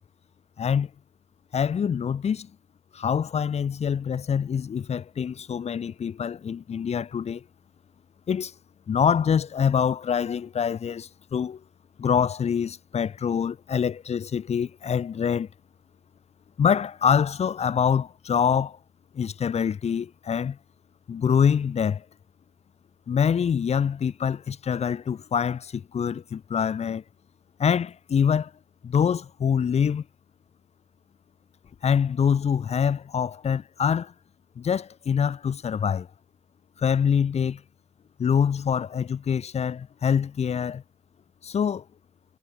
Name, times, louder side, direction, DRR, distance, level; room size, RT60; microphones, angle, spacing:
voice 1, 0.6-0.9 1.5-2.5 2.9-7.4 8.3-8.5 8.9-11.6 12.0-15.5 16.6-18.8 19.1-20.6 21.1-22.0 23.1-27.0 27.6-28.5 28.8-30.0 31.8-34.1 34.6-36.1 36.8-37.6 38.2-40.8 41.4-41.8, left 7 dB, 75° left, 0.7 m, -25 dB
wide cardioid pair, 165°, 11 cm